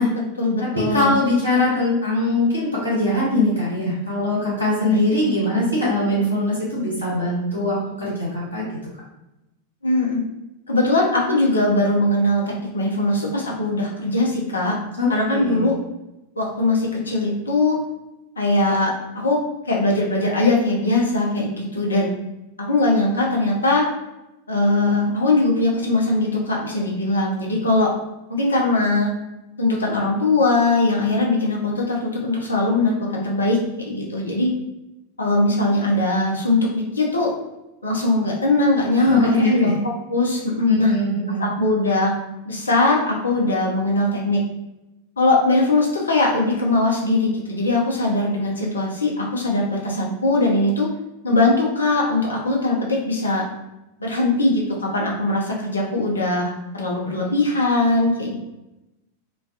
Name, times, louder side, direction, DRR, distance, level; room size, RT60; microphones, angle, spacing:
voice 1, 0.0-1.2 4.8-5.0 9.8-10.2 10.7-14.8 15.1-15.7 16.4-17.8 18.4-22.1 22.6-23.9 24.5-27.9 28.3-29.2 29.6-34.5 35.2-37.3 37.8-39.8 40.1-40.9 41.4-42.1 42.5-44.4 45.2-50.9 51.2-53.4 54.0-58.4, left 2 dB, 75° left, -2 dB, 0.5 m, -20 dB
voice 2, 0.6-8.6 15.0-15.7 38.9-39.7 40.6-41.5, left 2 dB, 85° right, -7 dB, 0.8 m, -22 dB
2.3 x 2.2 x 2.4 m, 0.96 s
figure-of-eight pair, 90°, 0 cm